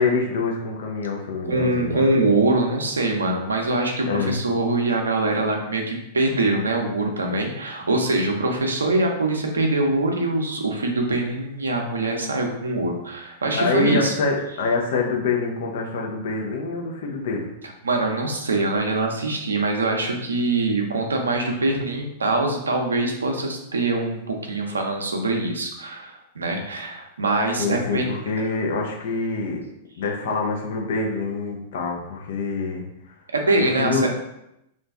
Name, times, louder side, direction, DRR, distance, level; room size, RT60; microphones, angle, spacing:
voice 1, 0.0-2.0 4.1-4.4 13.6-17.5 27.6-29.6 30.0-32.8 33.8-34.1, left 4 dB, 65° left, 0 dB, 0.6 m, -25 dB
voice 2, 1.4-14.1 17.8-28.1 33.3-34.1, right 2 dB, 90° right, 2 dB, 0.5 m, -23 dB
2.5 x 2.2 x 3.4 m, 0.84 s
hypercardioid pair, 105°, 0 cm